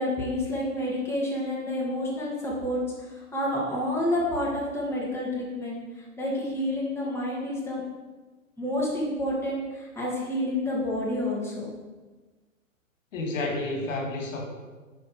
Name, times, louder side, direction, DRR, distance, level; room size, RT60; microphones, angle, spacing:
voice 1, 0.0-2.8 3.1-7.8 8.6-11.7, left 1 dB, 5° left, -5 dB, 2.7 m, -29 dB
voice 2, 13.1-14.5, left 2 dB, 70° left, 1 dB, 2.2 m, -30 dB
10.0 x 5.8 x 5.3 m, 1.3 s
hypercardioid pair, 120°, 40 cm